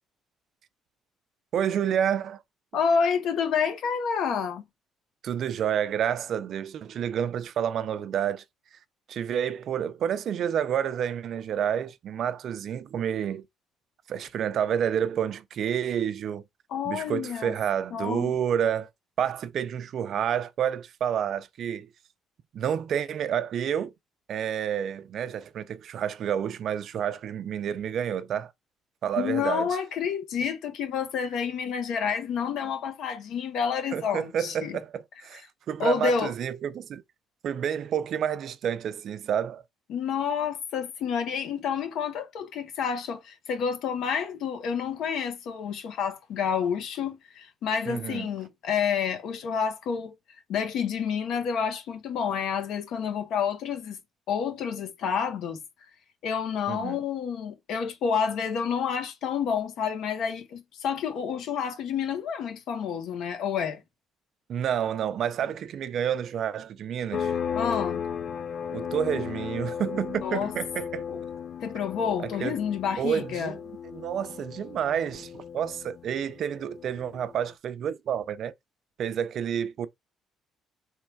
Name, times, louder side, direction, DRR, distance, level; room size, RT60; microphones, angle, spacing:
voice 1, 1.5-2.4 5.2-8.4 9.1-13.4 14.1-16.4 16.9-18.9 19.2-21.9 22.5-23.9 24.3-28.5 29.0-29.7 33.9-37.0 37.4-39.6 47.9-48.3 56.7-57.0 64.5-67.3 68.7-71.0 72.2-72.6 73.0-73.6 73.9-78.5 79.0-79.9, right 9 dB, 55° right, 0.5 m, -29 dB
voice 2, 2.7-4.6 16.7-17.5 17.9-18.3 29.2-34.8 35.3-35.4 35.8-36.3 39.9-50.1 50.5-54.0 54.3-55.6 56.2-63.8 67.5-68.0 70.2-70.5 71.1-71.2 71.6-73.5, left 6 dB, 70° left, 1.0 m, -29 dB
sound 1, 67.1-77.4, left 7 dB, 50° left, 0.4 m, -35 dB
3.7 x 3.2 x 4.5 m
cardioid pair, 130°, 0 cm